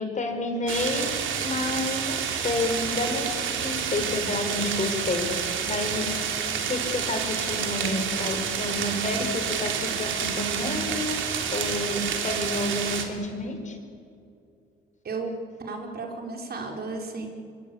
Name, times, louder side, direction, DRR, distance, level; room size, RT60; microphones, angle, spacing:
voice 1, 0.0-6.1 6.6-13.8, left 2 dB, 40° left, 5 dB, 5.0 m, -30 dB
sound 1, 0.7-13.0, right 7 dB, 75° right, 3.3 m, -29 dB
voice 2, 15.6-17.3, right 3 dB, 50° right, 2 dB, 4.8 m, -34 dB
24.5 x 23.5 x 8.7 m, 2.5 s
cardioid pair, 90°, 20 cm